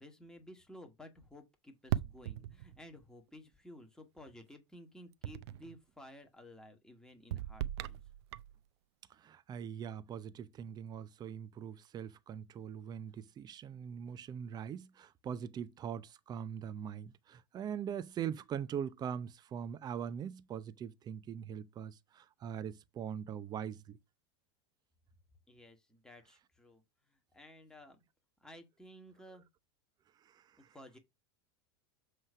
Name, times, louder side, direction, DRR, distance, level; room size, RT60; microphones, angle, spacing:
voice 1, 0.0-8.0 25.5-28.0 28.4-29.5 30.6-31.0, left 1 dB, 5° left, 1.8 m, -55 dB
sound 1, 1.9-3.0 5.2-5.8 7.3-8.6, right 13 dB, 75° right, 0.6 m, -38 dB
voice 2, 9.1-24.0 30.2-30.7, right 8 dB, 30° right, 0.7 m, -42 dB
7.6 x 3.3 x 5.5 m
supercardioid pair, 120°, 14 cm